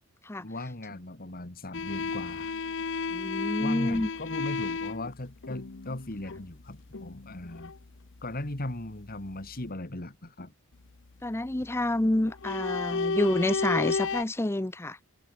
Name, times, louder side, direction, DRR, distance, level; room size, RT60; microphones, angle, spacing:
voice 1, 0.4-2.5 3.6-7.7 8.2-10.5, left 1 dB, 40° left, 2.2 m, -38 dB
sound 1, 1.7-9.7 11.6-11.9 12.2-14.2, left 4 dB, 60° left, 0.9 m, -33 dB
voice 2, 3.1-4.1 11.2-15.0, left 1 dB, 10° left, 0.5 m, -28 dB
head